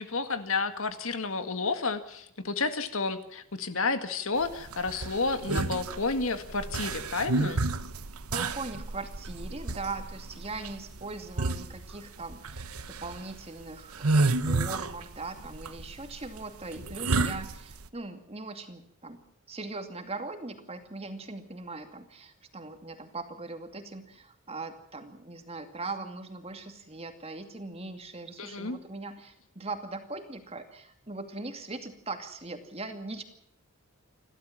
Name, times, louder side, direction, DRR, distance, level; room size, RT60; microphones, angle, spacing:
voice 1, 0.0-7.6 28.4-28.8, left 3 dB, 65° left, 9 dB, 2.0 m, -31 dB
sound 1, 4.4-17.9, right 3 dB, 85° right, 1.2 m, -31 dB
voice 2, 8.3-19.2 19.5-33.2, right 3 dB, 30° right, 6 dB, 2.4 m, -40 dB
29.5 x 12.5 x 7.5 m, 0.71 s
head